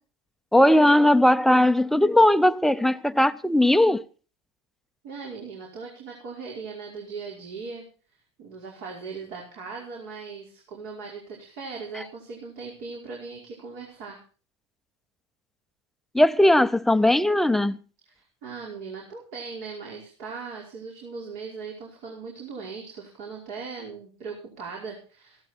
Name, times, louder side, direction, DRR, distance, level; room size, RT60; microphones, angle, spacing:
voice 1, 0.5-4.0 16.1-17.8, left 1 dB, ahead, 0.6 m, -18 dB
voice 2, 5.0-7.8 8.4-14.2 18.1-25.5, right 5 dB, 60° right, 5.2 m, -39 dB
16.0 x 13.0 x 4.5 m
supercardioid pair, 110°, 15 cm